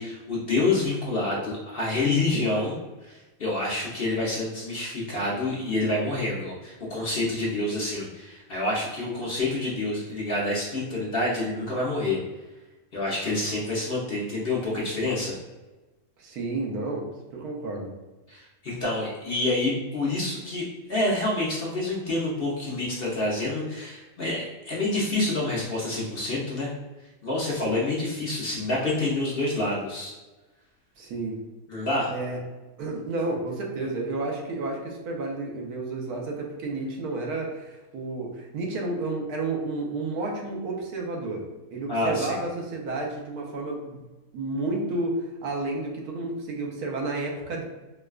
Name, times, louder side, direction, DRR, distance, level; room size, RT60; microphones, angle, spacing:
voice 1, 0.0-2.8 3.0-12.2 12.9-15.4 18.3-26.7 27.2-30.1 31.7-32.1 41.9-42.4, left 2 dB, 50° left, -5 dB, 0.8 m, -27 dB
voice 2, 16.2-17.9 31.0-31.4 32.1-32.4 32.8-44.0 44.3-47.6, right 2 dB, 90° right, 0 dB, 1.3 m, -31 dB
4.6 x 2.2 x 2.3 m, 1.1 s
omnidirectional pair, 1.6 m